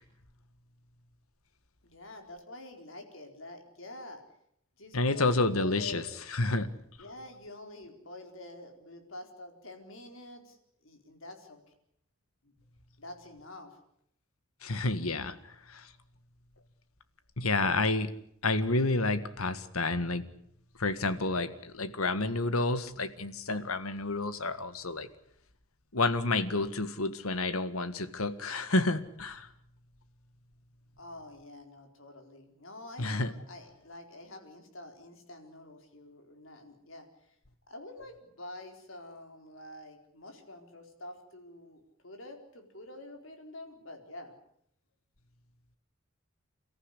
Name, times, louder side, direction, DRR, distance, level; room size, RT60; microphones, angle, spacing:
voice 1, 1.8-4.2 4.8-6.3 7.0-10.6 10.8-11.6 12.4-12.5 13.0-13.8 30.9-37.1 37.7-44.4, left 1 dB, 65° left, 4 dB, 4.3 m, -47 dB
voice 2, 4.9-6.0 6.3-6.7 14.6-15.3 17.4-18.1 18.4-20.2 20.8-25.1 25.9-29.5 33.0-33.3, left 2 dB, 90° left, 12 dB, 1.7 m, -29 dB
29.5 x 14.5 x 9.9 m, 0.72 s
head